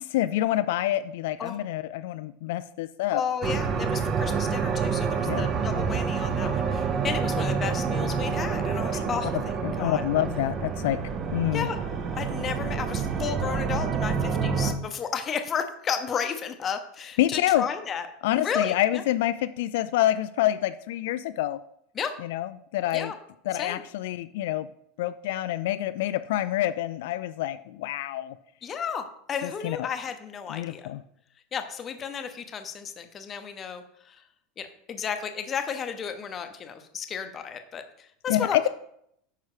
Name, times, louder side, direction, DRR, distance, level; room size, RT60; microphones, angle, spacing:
voice 1, 0.0-3.2 5.2-5.4 8.9-9.0 9.6-11.0 11.3-11.7 17.2-17.6 18.2-21.6 22.2-23.1 23.5-24.7 25.0-28.4 29.4-29.9 30.5-31.0 38.3-38.7, left 14 dB, 65° left, 11 dB, 0.4 m, -27 dB
voice 2, 3.1-9.4 9.8-10.0 11.5-11.8 12.2-18.1 18.3-19.0 21.9-22.1 22.9-23.1 23.6-23.8 28.6-30.9 31.5-34.2 34.6-38.7, left 7 dB, 20° left, 7 dB, 0.8 m, -33 dB
sound 1, 3.4-14.7, right 5 dB, 25° right, 0.7 m, -28 dB
9.4 x 5.7 x 4.9 m, 0.72 s
supercardioid pair, 165°, 0 cm